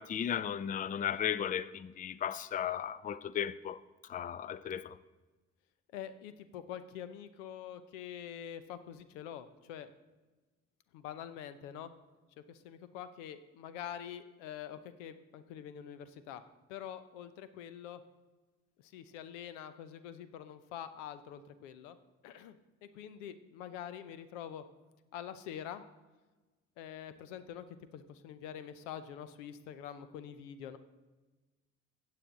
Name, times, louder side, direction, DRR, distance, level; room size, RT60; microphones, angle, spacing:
voice 1, 0.0-3.8 4.1-5.0, left 9 dB, 25° left, 0.4 m, -35 dB
voice 2, 5.9-9.9 10.9-11.9 12.5-16.4 16.7-18.0 18.8-22.0 22.2-24.6 25.1-25.8 26.8-27.6 27.9-30.8, left 9 dB, 80° left, 0.7 m, -45 dB
15.5 x 7.7 x 3.7 m
hypercardioid pair, 45°, 37 cm